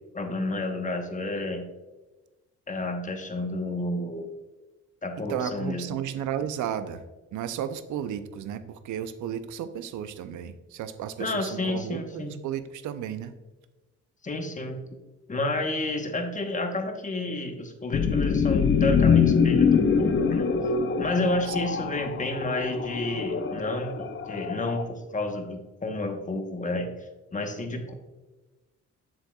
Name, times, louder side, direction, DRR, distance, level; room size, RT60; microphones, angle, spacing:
voice 1, 0.1-1.7 2.7-4.3 5.0-5.8 11.2-12.4 14.2-14.8 15.3-20.5 21.0-27.9, left 2 dB, 25° left, 5 dB, 1.1 m, -30 dB
voice 2, 5.3-7.0 7.3-13.3 21.5-21.6, right 9 dB, 75° right, 11 dB, 0.6 m, -33 dB
sound 1, 17.9-24.8, left 6 dB, 40° left, 0.5 m, -24 dB
7.5 x 6.9 x 2.3 m, 1.1 s
cardioid pair, 90°, 30 cm